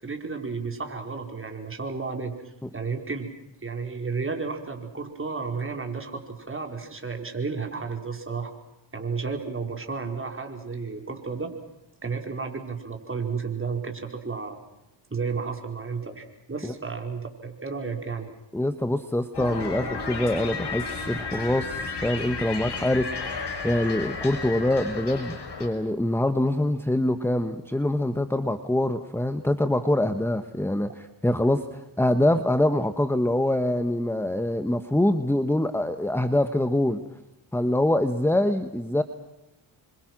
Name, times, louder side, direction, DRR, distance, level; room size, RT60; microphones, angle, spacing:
voice 1, 0.0-3.3 3.6-8.5 8.9-11.5 12.0-14.6 15.1-18.3, right 4 dB, 25° right, 4 dB, 4.8 m, -32 dB
voice 2, 18.5-37.0 37.5-39.0, left 1 dB, 5° left, 9 dB, 1.2 m, -25 dB
sound 1, 19.3-25.7, left 4 dB, 55° left, 6.0 m, -33 dB
28.5 x 25.0 x 6.2 m, 0.94 s
cardioid pair, 80°, 48 cm